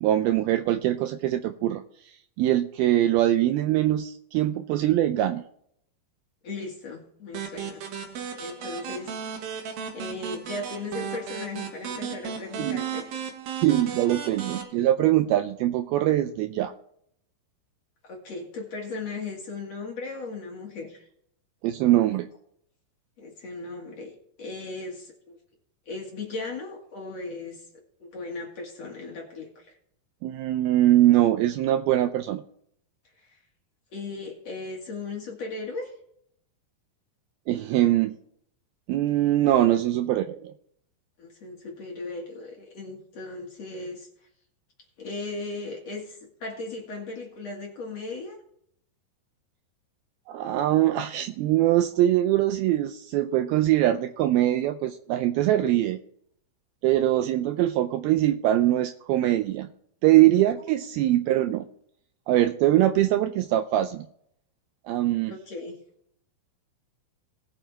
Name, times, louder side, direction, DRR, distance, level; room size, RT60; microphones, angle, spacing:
voice 1, 0.0-1.8 2.4-5.4 12.6-12.8 13.6-16.7 21.6-22.3 30.2-32.4 37.5-38.2 38.9-40.5 50.3-56.0 56.8-59.7 60.0-61.7 62.3-64.1 64.9-65.4, right 13 dB, 90° right, 8 dB, 2.2 m, -22 dB
voice 2, 6.4-7.8 8.4-9.1 9.9-13.1 14.1-14.2 18.0-21.1 23.2-24.1 24.4-25.4 25.9-27.6 28.0-29.7 33.2-33.4 33.9-35.9 41.2-44.1 45.0-48.4 65.3-65.7, left 3 dB, 50° left, 0 dB, 2.4 m, -37 dB
sound 1, 7.3-14.6, right 7 dB, 65° right, 3.1 m, -35 dB
19.0 x 7.2 x 3.3 m, 0.69 s
omnidirectional pair, 4.9 m